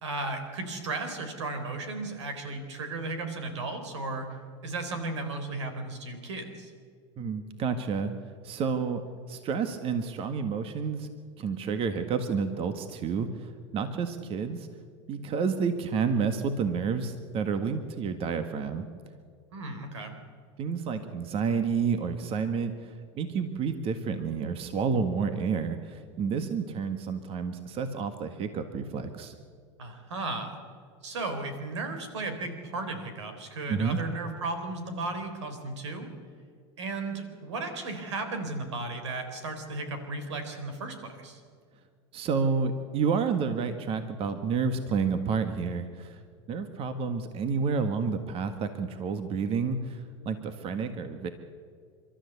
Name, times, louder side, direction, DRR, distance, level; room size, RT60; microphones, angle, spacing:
voice 1, 0.0-4.3 4.6-6.7 19.5-20.2 29.8-30.6 31.0-36.1 36.8-41.4, right 2 dB, 90° right, 8 dB, 4.0 m, -35 dB
voice 2, 7.2-8.1 8.4-9.0 9.3-11.1 11.4-14.7 15.1-18.8 20.6-29.3 33.7-34.0 42.1-46.2 46.5-51.3, right 5 dB, 40° right, 9 dB, 1.7 m, -30 dB
29.5 x 13.0 x 8.3 m, 2.1 s
supercardioid pair, 110°, 14 cm